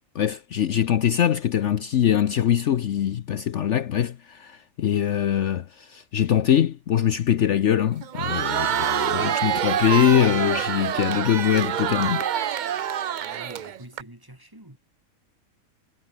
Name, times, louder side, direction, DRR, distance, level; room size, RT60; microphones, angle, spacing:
voice 1, 0.1-12.3, left 10 dB, 60° left, 1.0 m, -23 dB
Crowd, 8.0-14.0, right 10 dB, 90° right, 0.4 m, -26 dB
voice 2, 13.2-14.8, right 1 dB, 15° right, 2.9 m, -45 dB
omnidirectional pair, 1.5 m